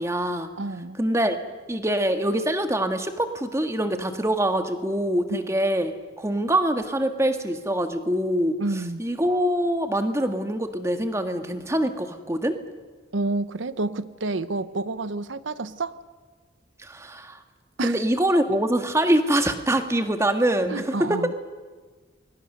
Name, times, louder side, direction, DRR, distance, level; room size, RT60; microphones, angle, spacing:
voice 1, 0.0-0.5 1.0-1.4 1.7-8.5 9.0-12.6 16.8-17.4 17.8-21.3, right 1 dB, 15° right, 7 dB, 1.5 m, -24 dB
voice 2, 0.6-1.0 5.3-5.4 8.6-9.0 13.1-16.0 17.8-18.0 20.7-21.3, right 2 dB, 90° right, 14 dB, 0.8 m, -29 dB
29.0 x 22.5 x 6.7 m, 1.4 s
head